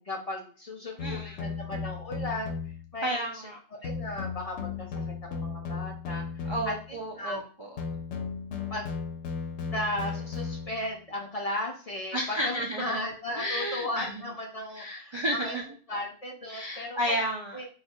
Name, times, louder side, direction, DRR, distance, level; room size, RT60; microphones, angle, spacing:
voice 1, 0.0-2.6 2.9-3.4 3.8-7.4 8.7-9.0 9.7-15.6 15.9-17.2 17.5-17.7, left 1 dB, 40° left, 0 dB, 0.6 m, -36 dB
sound 1, 1.0-2.9 3.8-6.9 7.8-10.9, left 5 dB, 90° left, 0.9 m, -35 dB
voice 2, 1.0-1.4 3.0-3.6 6.5-7.8 12.1-13.0 13.3-14.2 14.7-16.1 16.5-17.6, equal, 45° right, -1 dB, 0.4 m, -32 dB
2.7 x 2.4 x 4.2 m, 0.41 s
omnidirectional pair, 1.1 m